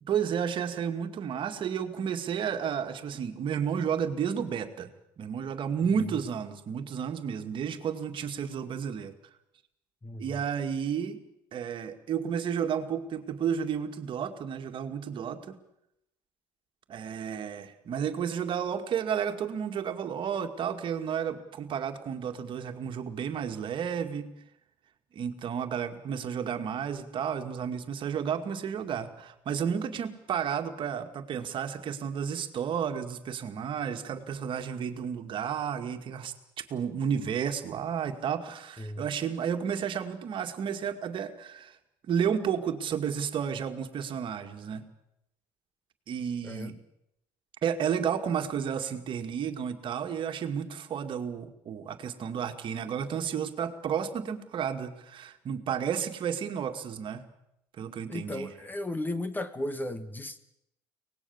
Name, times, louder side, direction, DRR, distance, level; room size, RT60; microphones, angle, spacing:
voice 1, 0.0-4.9 5.2-9.1 10.2-11.2 11.5-15.6 16.9-24.3 25.1-41.8 42.1-44.9 46.1-46.8 47.6-57.2 57.8-58.5, right 7 dB, 50° right, 6 dB, 2.2 m, -32 dB
voice 2, 5.8-6.2 10.0-10.4 38.8-39.1 46.4-46.7 58.1-60.4, left 1 dB, 15° left, 12 dB, 1.5 m, -35 dB
24.0 x 19.0 x 7.2 m, 0.80 s
supercardioid pair, 100°, 11 cm